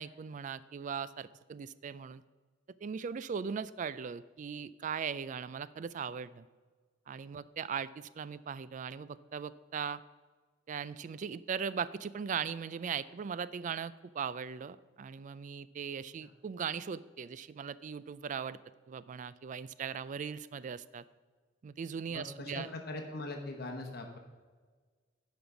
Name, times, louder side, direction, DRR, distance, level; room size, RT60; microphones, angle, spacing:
voice 1, 0.0-2.2 2.8-6.5 7.1-10.0 10.7-18.6 18.9-21.0 21.6-22.7, right 6 dB, 40° right, 17 dB, 0.3 m, -39 dB
voice 2, 22.1-24.2, left 2 dB, 55° left, 3 dB, 1.0 m, -41 dB
10.5 x 5.3 x 5.8 m, 1.5 s
head